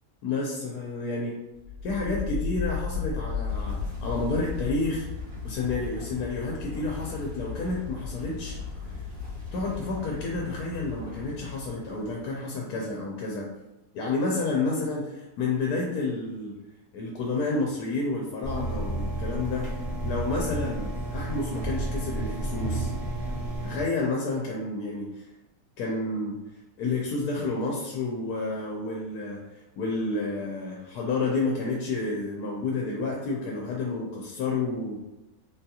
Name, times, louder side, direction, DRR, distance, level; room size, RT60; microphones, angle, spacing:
voice 1, 0.2-1.3 1.8-5.1 5.4-8.6 8.9-9.0 9.5-13.5 13.9-16.5 16.9-19.7 20.0-22.9 23.6-25.3 25.8-26.4 26.8-29.4 29.8-35.0, left 3 dB, 80° left, -2 dB, 1.1 m, -30 dB
sound 1, 1.6-12.4, left 5 dB, 85° right, 1.9 m, -35 dB
sound 2, 18.4-23.8, right 1 dB, 25° right, 0.9 m, -31 dB
3.7 x 2.3 x 2.7 m, 1.0 s
omnidirectional pair, 1.6 m